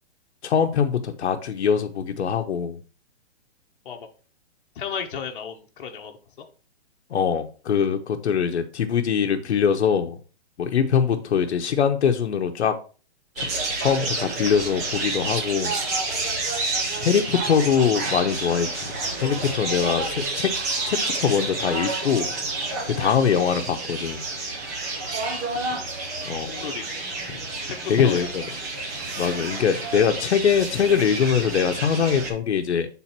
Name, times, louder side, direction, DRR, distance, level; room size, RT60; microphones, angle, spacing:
voice 1, 0.4-2.8 7.1-10.2 10.6-12.7 13.4-13.5 13.8-15.8 17.0-18.9 19.2-20.5 20.8-22.3 23.0-24.3 26.3-26.5 27.9-28.3 29.2-32.9, left 7 dB, 90° left, 6 dB, 0.9 m, -22 dB
voice 2, 4.7-6.4 10.7-10.9 17.6-17.7 25.6-25.9 26.5-28.8, left 7 dB, 50° left, 3 dB, 1.1 m, -35 dB
sound 1, 13.4-32.3, right 3 dB, 15° right, 0.6 m, -29 dB
7.3 x 3.9 x 4.3 m, 0.37 s
hypercardioid pair, 170°, 33 cm